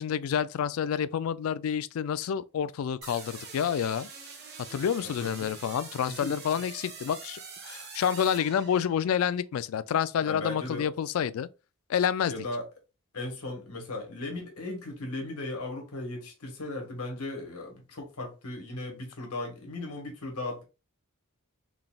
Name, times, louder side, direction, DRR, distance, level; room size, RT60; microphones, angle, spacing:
voice 1, 0.0-4.1 4.7-11.5 11.9-12.3, left 8 dB, 65° left, 0.3 m, -28 dB
sound 1, 3.0-9.2, right 5 dB, 45° right, 1.1 m, -45 dB
voice 2, 5.2-5.5 6.1-6.4 10.2-10.9 12.3-12.7 13.1-20.6, left 2 dB, 85° left, 1.4 m, -37 dB
3.9 x 3.5 x 2.3 m
head